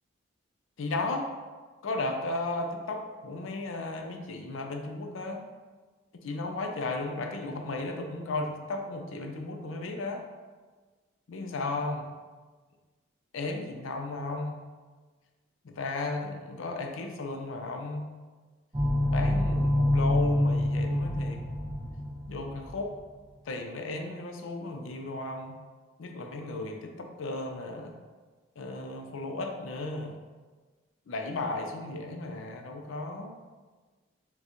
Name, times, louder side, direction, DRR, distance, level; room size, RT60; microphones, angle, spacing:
voice 1, 0.8-1.3 1.8-5.4 6.1-10.2 11.3-12.1 13.3-14.6 15.6-18.1 19.1-21.4 22.3-22.9 23.5-25.5 26.0-27.9 28.6-30.2 31.1-33.3, left 2 dB, 75° left, 3 dB, 0.5 m, -35 dB
sound 1, 18.7-22.7, left 1 dB, 20° right, 0.6 m, -26 dB
6.6 x 2.3 x 2.9 m, 1.4 s
head